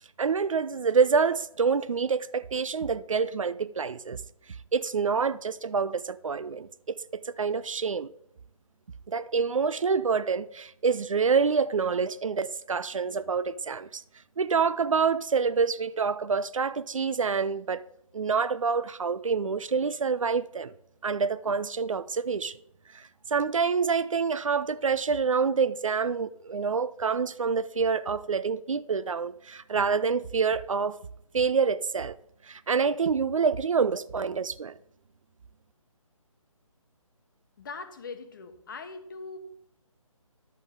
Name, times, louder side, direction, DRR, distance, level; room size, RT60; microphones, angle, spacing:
voice 1, 0.2-4.2 4.7-8.1 9.1-14.0 14.4-17.8 18.1-20.7 21.0-22.6 22.9-31.0 31.3-32.2 32.4-34.8, right 5 dB, 65° right, 0.5 m, -27 dB
voice 2, 37.6-39.4, left 4 dB, 35° left, 1.0 m, -41 dB
11.0 x 7.3 x 3.7 m
figure-of-eight pair, 150°, 18 cm